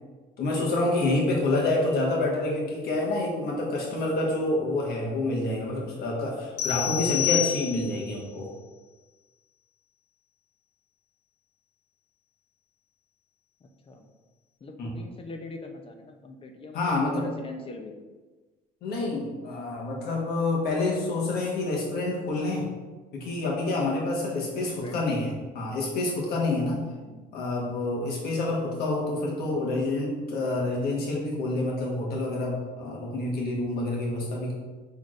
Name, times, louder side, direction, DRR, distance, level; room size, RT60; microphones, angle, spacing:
voice 1, 0.4-8.5 14.8-14.9 16.7-17.2 18.8-22.7 23.1-25.3 25.5-26.8 27.3-34.5, left 2 dB, 70° left, -2 dB, 1.3 m, -28 dB
voice 2, 1.0-1.3 13.6-14.1 14.6-18.0 24.5-25.4 26.8-27.3, left 3 dB, 35° left, 5 dB, 0.6 m, -42 dB
sound 1, 6.6-8.1, left 12 dB, 90° left, 0.6 m, -28 dB
6.0 x 3.5 x 2.5 m, 1.3 s
cardioid pair, 110°, 17 cm